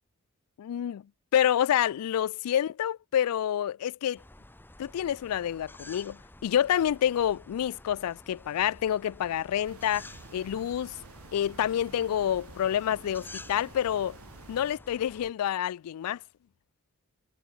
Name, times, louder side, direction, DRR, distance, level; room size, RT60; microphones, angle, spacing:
voice 1, 0.6-1.0 1.3-4.2 4.8-11.0 11.3-14.2 14.5-16.2, left 10 dB, 90° left, 0.3 m, -28 dB
sound 1, 4.2-15.3, left 2 dB, 10° left, 1.3 m, -51 dB
sound 2, 9.6-14.8, right 3 dB, 75° right, 1.1 m, -50 dB
head